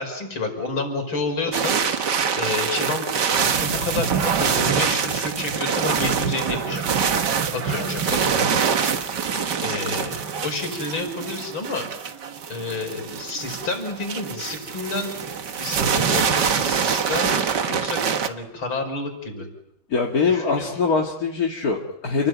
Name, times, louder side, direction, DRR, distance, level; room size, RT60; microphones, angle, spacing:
voice 1, 0.0-3.1 3.6-6.9 7.5-9.0 9.3-11.9 12.5-15.3 15.6-18.0 18.3-19.5 20.3-20.7, left 3 dB, 80° left, 5 dB, 6.1 m, -30 dB
sound 1, 1.5-18.3, right 6 dB, 55° right, 2.0 m, -24 dB
voice 2, 19.9-22.3, left 4 dB, 45° left, 0 dB, 2.4 m, -23 dB
29.0 x 20.0 x 9.2 m, 0.83 s
omnidirectional pair, 2.2 m